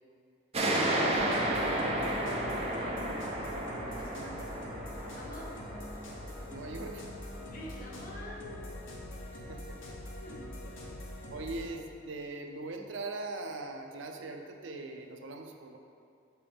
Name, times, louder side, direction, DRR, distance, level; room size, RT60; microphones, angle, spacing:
sound 1, 0.5-7.7, right 1 dB, 30° right, 0.7 m, -33 dB
voice 1, 0.7-2.3 2.8-3.3 3.8-4.5 5.1-5.5 7.5-8.6 10.2-10.9, equal, 45° left, -3 dB, 1.1 m, -46 dB
sound 2, 1.1-11.7, left 1 dB, 85° left, 1.1 m, -44 dB
voice 2, 6.5-7.1 9.3-9.8 11.3-15.8, right 2 dB, 75° right, 4 dB, 0.6 m, -41 dB
6.7 x 5.6 x 3.5 m, 2.4 s
head